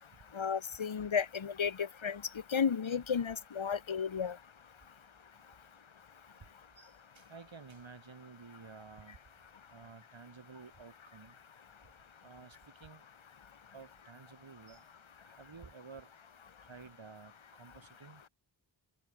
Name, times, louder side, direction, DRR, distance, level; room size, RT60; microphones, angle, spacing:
voice 1, 0.3-2.2 2.5-4.4, left 7 dB, 85° left, 1.9 m, -33 dB
voice 2, 6.8-9.2 9.7-11.3 12.2-13.0 13.7-14.8 15.2-16.1 16.6-17.3 17.6-18.2, right 5 dB, 75° right, 6.0 m, -52 dB
open air
wide cardioid pair, 90°, 46 cm